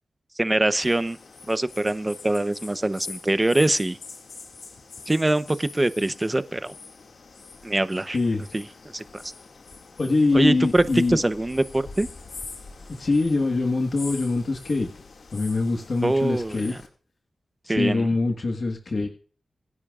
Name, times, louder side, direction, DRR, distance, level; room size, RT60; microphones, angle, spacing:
voice 1, 0.4-1.2 1.5-4.0 5.1-6.7 7.6-8.2 8.5-8.7 8.9-9.3 10.3-10.8 11.1-12.1 16.0-16.6 17.7-18.1, right 2 dB, 20° right, 12 dB, 0.8 m, -23 dB
sound 1, 0.7-16.9, left 4 dB, 75° left, 2.2 m, -44 dB
voice 2, 8.1-8.4 10.0-11.2 13.0-14.9 15.3-16.8 17.8-19.1, left 3 dB, 55° left, 3 dB, 1.5 m, -23 dB
26.0 x 10.5 x 2.5 m, 0.43 s
wide cardioid pair, 75°, 0 cm